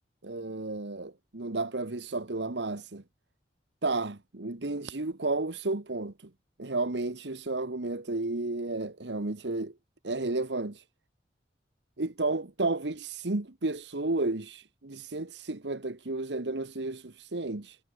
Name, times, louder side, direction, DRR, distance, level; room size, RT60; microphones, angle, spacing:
voice 1, 0.2-3.0 3.8-6.1 6.6-9.7 10.0-10.8 12.0-17.8, right 2 dB, 70° right, 1.4 m, -32 dB
head